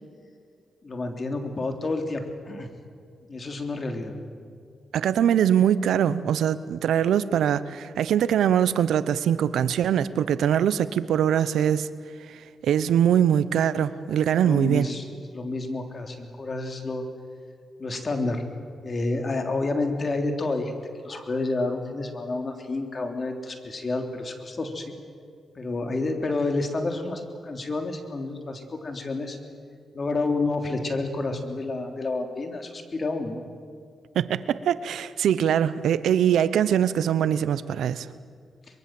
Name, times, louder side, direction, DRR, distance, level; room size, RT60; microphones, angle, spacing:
voice 1, 0.8-2.7 3.2-4.2 14.4-15.0 15.3-17.0 17.8-18.4 18.8-20.8 21.0-24.9 25.5-29.4 29.9-33.4, left 2 dB, 45° left, 4 dB, 3.4 m, -29 dB
voice 2, 4.9-11.9 12.3-14.9 34.1-38.1, right 9 dB, 85° right, 15 dB, 0.8 m, -22 dB
23.5 x 22.5 x 7.7 m, 2.2 s
cardioid pair, 65°, 0 cm